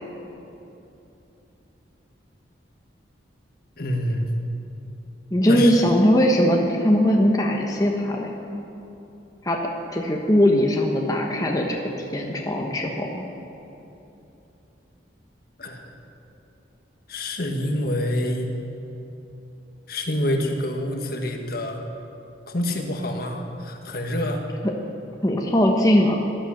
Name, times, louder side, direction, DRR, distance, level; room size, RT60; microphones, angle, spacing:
voice 1, 3.8-4.3 5.5-5.8 7.4-7.5 15.6-15.8 17.1-18.5 19.9-21.8 22.5-24.4, left 1 dB, 55° left, 3 dB, 1.6 m, -27 dB
voice 2, 5.3-8.3 9.4-9.6 9.9-11.8 12.1-13.2 25.2-26.3, equal, 20° left, 0 dB, 1.1 m, -20 dB
17.5 x 11.5 x 6.5 m, 3.0 s
head